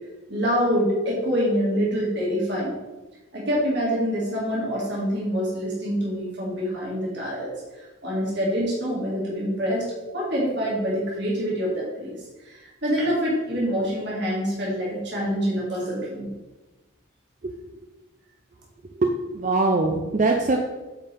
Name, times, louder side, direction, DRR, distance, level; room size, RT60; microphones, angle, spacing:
voice 1, 0.3-2.8 3.3-7.5 7.8-9.8 10.1-12.2 12.5-16.3, equal, 55° right, -5 dB, 2.1 m, -26 dB
voice 2, 18.9-20.6, right 3 dB, 40° right, 2 dB, 0.4 m, -22 dB
8.6 x 4.5 x 3.4 m, 1.1 s
head